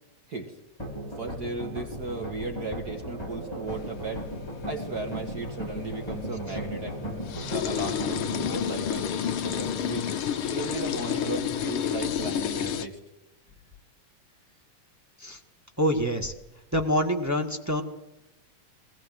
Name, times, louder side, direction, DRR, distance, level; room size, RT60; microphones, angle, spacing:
sound 1, 0.8-8.5, right 1 dB, 10° left, 4.0 m, -36 dB
voice 1, 1.2-4.3 4.7-7.0 7.4-9.1 9.4-10.1 10.4-13.0, right 3 dB, 35° right, 3 dB, 1.9 m, -36 dB
sound 2, 3.7-12.9, left 8 dB, 70° left, 1.3 m, -31 dB
voice 2, 15.8-16.3 16.7-17.8, equal, 10° right, 2 dB, 0.8 m, -26 dB
20.0 x 19.0 x 7.8 m, 0.94 s
omnidirectional pair, 3.4 m